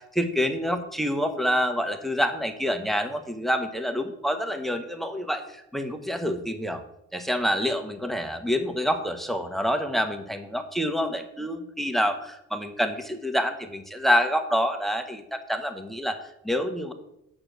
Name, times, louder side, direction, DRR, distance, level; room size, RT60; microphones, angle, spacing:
voice 1, 0.0-6.8 7.1-16.9, equal, ahead, 7 dB, 0.9 m, -27 dB
7.6 x 4.5 x 6.7 m, 0.80 s
cardioid pair, 90°, 30 cm